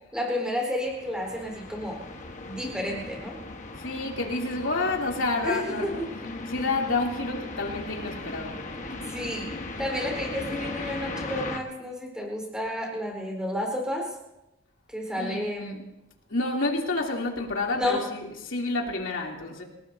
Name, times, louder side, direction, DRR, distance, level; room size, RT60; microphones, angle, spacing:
voice 1, 0.1-2.0 2.4-3.4 5.4-6.1 8.8-9.5 9.8-14.1 14.9-15.8 17.7-18.0, left 1 dB, 5° right, -1 dB, 4.1 m, -31 dB
sound 1, 0.8-11.6, left 2 dB, 35° left, 1.3 m, -38 dB
voice 2, 3.8-6.0 6.5-8.6 15.2-15.8 16.3-19.6, left 2 dB, 70° left, -1 dB, 3.0 m, -29 dB
28.0 x 18.5 x 2.8 m, 0.95 s
head